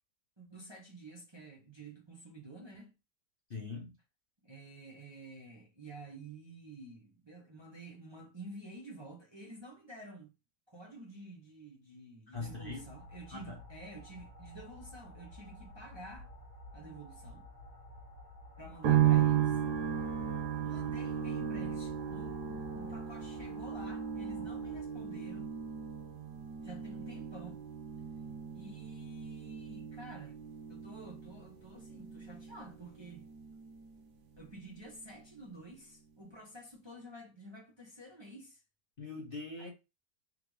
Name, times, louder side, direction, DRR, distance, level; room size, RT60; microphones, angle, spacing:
voice 1, 0.4-3.0 4.4-10.3 10.7-16.3 16.7-17.5 18.6-19.6 20.6-25.5 26.6-27.6 28.5-30.4 30.7-33.3 34.4-38.6 39.6-39.7, right 2 dB, 20° right, 0.8 m, -50 dB
voice 2, 3.5-3.9 12.3-12.8 13.3-13.6 39.0-39.7, left 3 dB, 45° left, 0.8 m, -41 dB
sound 1, 12.3-24.8, left 1 dB, 25° left, 1.2 m, -52 dB
sound 2, 18.8-34.1 34.4-35.2, right 10 dB, 80° right, 1.4 m, -35 dB
3.6 x 3.5 x 3.2 m
omnidirectional pair, 1.7 m